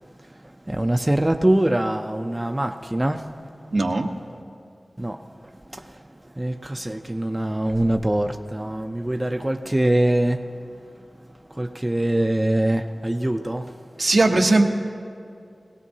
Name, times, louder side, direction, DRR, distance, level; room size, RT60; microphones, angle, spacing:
voice 1, 0.4-3.3 5.0-10.4 11.5-13.8, right 1 dB, 20° right, 0.5 m, -24 dB
voice 2, 3.7-4.1 14.0-14.7, right 2 dB, 70° right, 1.0 m, -18 dB
20.0 x 17.0 x 2.8 m
wide cardioid pair, 60°, 0 cm